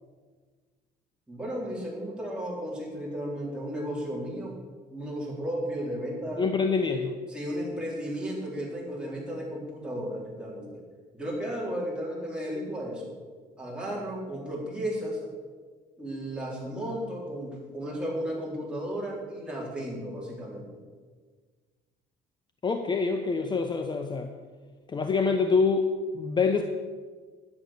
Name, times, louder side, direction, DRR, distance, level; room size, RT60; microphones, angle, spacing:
voice 1, 1.3-4.5 4.9-6.4 7.3-10.8 11.1-13.1 13.6-15.3 16.0-20.7, equal, 5° right, -5 dB, 4.4 m, -34 dB
voice 2, 6.4-7.2 22.6-24.3 24.9-26.6, left 4 dB, 25° left, 6 dB, 0.8 m, -26 dB
11.0 x 8.4 x 6.7 m, 1.5 s
cardioid pair, 110°, 17 cm